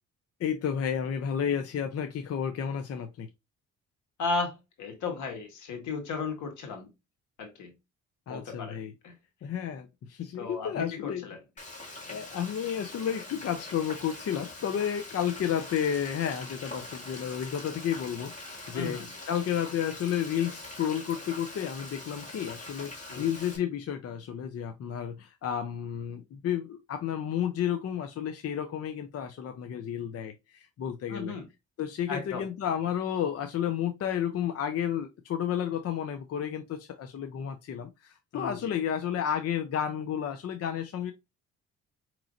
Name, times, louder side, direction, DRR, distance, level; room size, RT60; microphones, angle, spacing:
voice 1, 0.4-3.3 8.3-8.9 9.4-11.3 12.0-19.0 19.3-31.3 31.8-41.1, left 9 dB, 55° left, 0.6 m, -32 dB
voice 2, 4.2-6.9 7.4-7.7 8.3-8.8 9.0-9.1 10.4-11.4 18.7-19.1 23.1-23.3 31.1-31.5 32.1-32.4 38.3-38.7, left 4 dB, 75° left, 1.6 m, -35 dB
Frying (food), 11.6-23.6, left 2 dB, 25° left, 2.1 m, -43 dB
4.9 x 3.1 x 2.4 m
cardioid pair, 90°, 30 cm